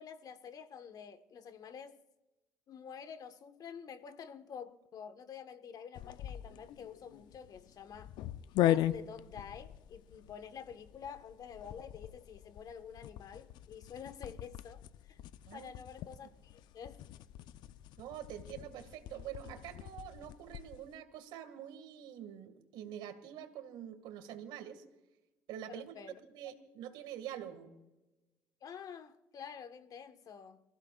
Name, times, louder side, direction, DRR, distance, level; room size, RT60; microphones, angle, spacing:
voice 1, 0.0-2.0 2.7-8.1 8.6-15.2 15.5-17.0 25.7-26.2 28.6-30.6, left 7 dB, 55° left, 1.4 m, -49 dB
sound 1, 5.9-20.9, left 12 dB, 70° left, 0.7 m, -39 dB
voice 2, 18.0-24.8 25.5-26.0 26.3-27.7, right 10 dB, 75° right, 2.0 m, -46 dB
28.0 x 15.5 x 2.5 m
supercardioid pair, 70°, 8 cm